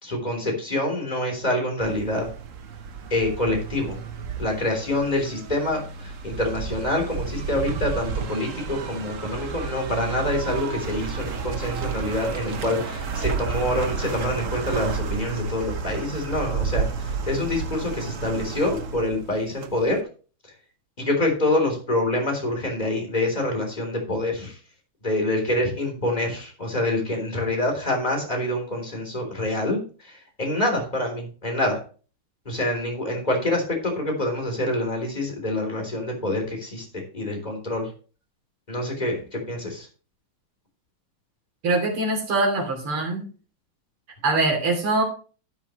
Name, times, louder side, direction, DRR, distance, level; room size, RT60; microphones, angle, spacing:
voice 1, 0.0-2.3 3.1-4.0 4.4-16.9 17.3-20.0 21.0-24.5 25.0-30.1 30.4-31.8 32.5-37.9 38.7-39.9, left 1 dB, 20° left, 2 dB, 3.6 m, -26 dB
sound 1, 1.8-20.0, right 6 dB, 50° right, 1.1 m, -31 dB
voice 2, 41.6-43.3 44.2-45.0, right 2 dB, 80° right, 2 dB, 4.0 m, -23 dB
12.5 x 8.6 x 3.1 m, 0.37 s
omnidirectional pair, 2.3 m